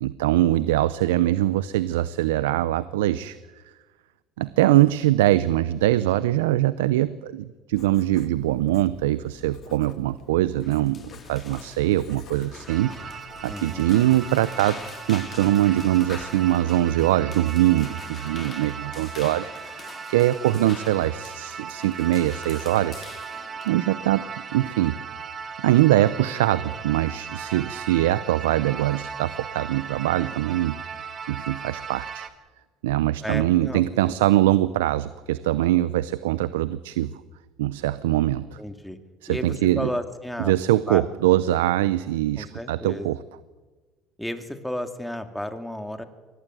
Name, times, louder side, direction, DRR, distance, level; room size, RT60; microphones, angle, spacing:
voice 1, 0.0-3.4 4.4-14.8 15.1-23.1 23.6-24.3 24.5-25.0 25.6-32.3 32.8-37.2 37.6-38.6 39.2-39.9 40.4-43.2, right 14 dB, 90° right, 16 dB, 0.7 m, -22 dB
Writing, 7.7-17.3, left 10 dB, 60° left, 2.0 m, -49 dB
sound 1, 10.6-23.7, left 6 dB, 40° left, 2.1 m, -44 dB
sound 2, 12.7-32.3, right 6 dB, 40° right, 1.9 m, -38 dB
voice 2, 13.5-14.1 33.2-34.2 38.6-39.0 39.3-40.5 40.9-41.0 42.4-43.1 44.2-46.0, left 1 dB, 5° left, 7 dB, 2.7 m, -33 dB
23.5 x 18.0 x 9.4 m, 1.3 s
supercardioid pair, 75°, 0 cm